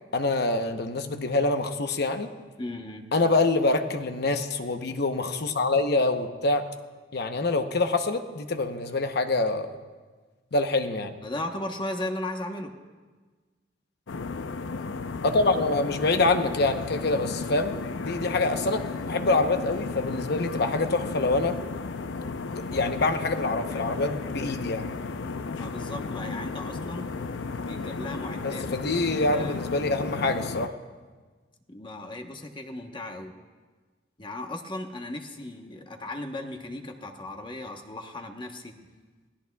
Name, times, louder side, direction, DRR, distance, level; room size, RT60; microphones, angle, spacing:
voice 1, 0.1-2.3 3.1-6.6 7.1-9.7 10.5-11.2 15.2-17.7 18.0-21.6 22.7-24.9 28.4-30.8, left 2 dB, 60° left, 7 dB, 0.9 m, -25 dB
voice 2, 2.6-3.0 11.2-12.7 25.5-27.1 27.6-29.0 29.3-29.6 31.7-33.3 34.2-38.7, left 1 dB, 25° left, 4 dB, 1.1 m, -36 dB
sound 1, 14.1-30.7, left 4 dB, 85° left, 0.6 m, -34 dB
26.0 x 17.5 x 2.3 m, 1.4 s
head